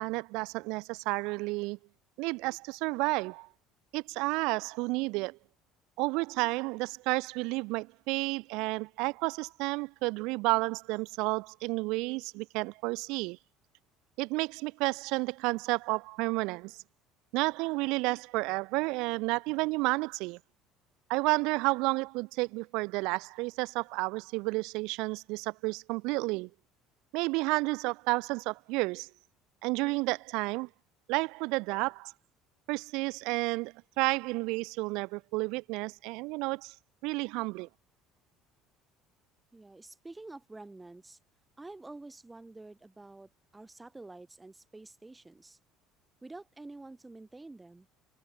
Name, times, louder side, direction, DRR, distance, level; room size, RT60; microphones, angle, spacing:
voice 1, 0.0-1.8 2.2-3.5 3.9-5.4 6.0-13.4 14.2-16.8 17.3-20.4 21.1-26.5 27.1-29.1 29.6-30.7 31.1-32.1 32.7-36.7 37.0-37.7, right 25 dB, 65° right, 1.9 m, -31 dB
voice 2, 39.5-41.2 41.6-45.6 46.2-47.9, right 2 dB, 10° right, 7.0 m, -48 dB
cardioid pair, 180°, 0 cm